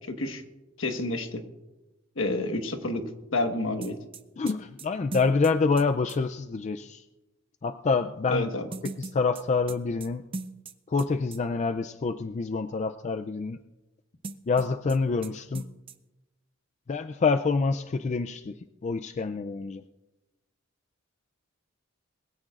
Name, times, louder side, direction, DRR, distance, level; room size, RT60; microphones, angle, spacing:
voice 1, 0.1-0.4 0.8-1.4 2.2-3.0 3.3-4.0 8.3-8.7, left 2 dB, 75° left, 6 dB, 1.4 m, -29 dB
sound 1, 3.8-6.2 8.7-11.1 11.3-11.4 14.2-15.0 15.2-15.3 15.5-15.9, right 3 dB, 25° right, 0.5 m, -39 dB
voice 2, 4.4-7.0 7.6-8.5 9.0-10.2 10.9-13.6 14.5-15.7 16.9-18.5 18.8-19.8, left 4 dB, 35° left, 9 dB, 0.4 m, -27 dB
21.5 x 15.5 x 2.4 m, 1.0 s
head